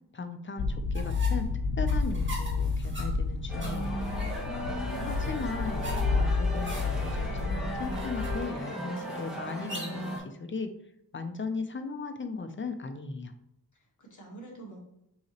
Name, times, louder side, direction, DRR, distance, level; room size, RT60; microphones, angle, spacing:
voice 1, 0.1-1.5 1.8-4.0 5.1-5.9 6.2-10.7 11.1-13.3, left 4 dB, 30° left, 7 dB, 0.5 m, -37 dB
sound 1, 0.6-8.4, left 4 dB, 90° left, 0.5 m, -30 dB
sound 2, 0.9-10.2, right 1 dB, 30° right, 1.4 m, -44 dB
sound 3, 3.5-10.2, right 1 dB, ahead, 1.1 m, -37 dB
voice 2, 4.5-5.3 13.7-14.8, right 3 dB, 50° left, -2 dB, 1.4 m, -48 dB
5.6 x 2.9 x 2.9 m, 0.80 s
wide cardioid pair, 105°, 39 cm